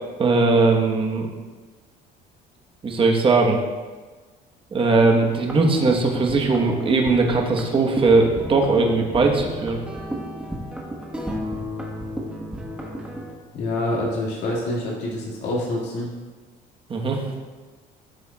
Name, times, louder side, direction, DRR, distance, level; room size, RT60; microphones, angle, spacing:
voice 1, 0.2-1.3 2.8-3.6 4.7-9.8 16.9-17.2, right 3 dB, 30° right, 1 dB, 1.2 m, -19 dB
sound 1, 5.0-13.3, equal, 5° right, 1.3 m, -33 dB
voice 2, 13.5-16.1, left 1 dB, 75° left, -4 dB, 2.2 m, -26 dB
12.5 x 6.8 x 2.4 m, 1.3 s
cardioid pair, 120°, 18 cm